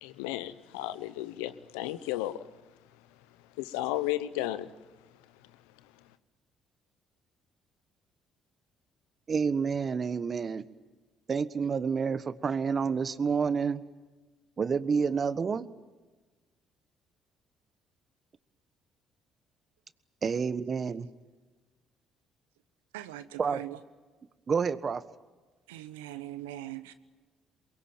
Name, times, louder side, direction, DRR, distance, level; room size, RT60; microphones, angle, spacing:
voice 1, 0.0-2.4 3.6-4.7, left 14 dB, 85° left, 0.9 m, -33 dB
voice 2, 9.3-10.6 11.3-13.8 14.6-15.7 20.2-21.1 23.4-23.6 24.5-25.0, right 5 dB, 45° right, 1.3 m, -29 dB
voice 3, 22.9-23.8 25.7-26.9, right 14 dB, 90° right, 1.1 m, -41 dB
23.0 x 22.5 x 9.1 m
hypercardioid pair, 55°, 0 cm